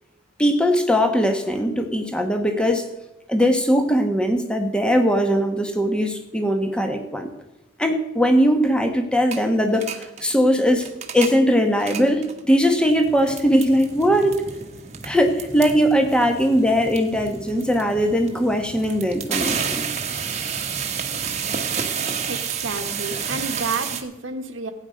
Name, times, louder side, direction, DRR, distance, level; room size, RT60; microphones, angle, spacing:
voice 1, 0.4-2.9 3.3-7.3 7.8-10.9 11.1-14.4 15.0-19.8, equal, 5° left, 5 dB, 1.4 m, -20 dB
sound 1, 9.3-9.4 9.7-10.3 10.7-11.4 11.7-12.4 12.9-24.0, right 6 dB, 35° right, 1.3 m, -30 dB
voice 2, 22.3-24.7, right 3 dB, 80° right, 5 dB, 1.3 m, -30 dB
16.5 x 9.3 x 5.2 m, 0.98 s
head